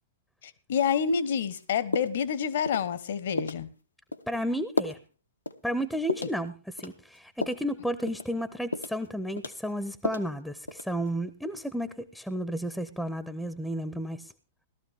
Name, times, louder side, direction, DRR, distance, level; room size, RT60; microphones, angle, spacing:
voice 1, 0.4-3.7, left 7 dB, 55° left, 16 dB, 1.1 m, -28 dB
sound 1, 1.5-1.6 1.9-2.3 2.7-2.9 3.4-3.6 4.1-4.3 4.8-5.0 5.5-5.6 6.1-6.4 6.8-7.7 8.1-8.3 8.7-9.1 9.4-10.3 10.7-11.1, left 3 dB, 80° left, 1.0 m, -33 dB
voice 2, 4.3-5.0 5.6-14.3, equal, ahead, 14 dB, 0.8 m, -32 dB
17.5 x 12.5 x 3.5 m, 0.33 s
figure-of-eight pair, 105°, 0 cm